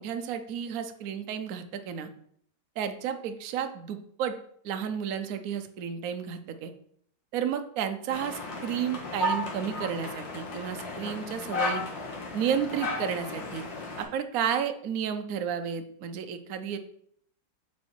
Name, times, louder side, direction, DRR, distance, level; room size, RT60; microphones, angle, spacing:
voice 1, 0.0-2.1 2.8-4.3 4.6-6.7 7.3-11.8 12.3-13.6 14.0-16.8, right 8 dB, 65° right, 7 dB, 1.0 m, -32 dB
sound 1, 8.1-14.0, left 2 dB, 85° left, 2.3 m, -34 dB
7.4 x 4.7 x 4.4 m, 0.66 s
omnidirectional pair, 2.0 m